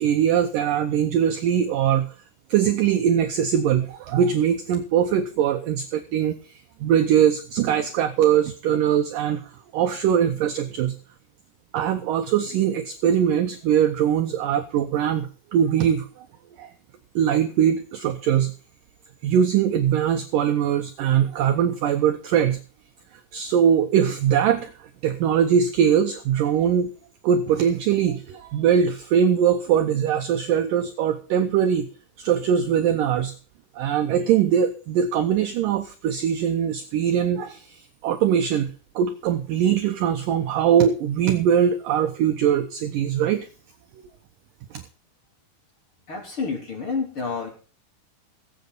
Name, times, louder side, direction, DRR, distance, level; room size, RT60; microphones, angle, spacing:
voice 1, 0.0-2.1 2.5-11.0 11.7-16.3 16.6-16.7 17.2-18.5 19.2-22.6 23.3-26.9 27.2-31.9 32.2-33.3 33.8-43.5 44.7-44.8, right 8 dB, 75° right, 7 dB, 2.1 m, -22 dB
voice 2, 46.1-47.5, left 4 dB, 35° left, 1 dB, 4.1 m, -29 dB
21.0 x 8.3 x 4.0 m, 0.37 s
omnidirectional pair, 4.8 m